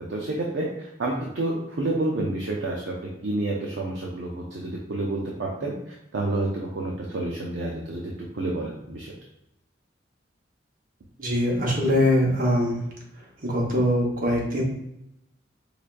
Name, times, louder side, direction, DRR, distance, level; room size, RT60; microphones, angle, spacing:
voice 1, 0.1-9.1, right 2 dB, 80° right, -2 dB, 0.5 m, -29 dB
voice 2, 11.2-12.9 13.4-14.6, left 1 dB, 50° right, -3 dB, 1.1 m, -22 dB
4.8 x 2.3 x 2.5 m, 0.82 s
head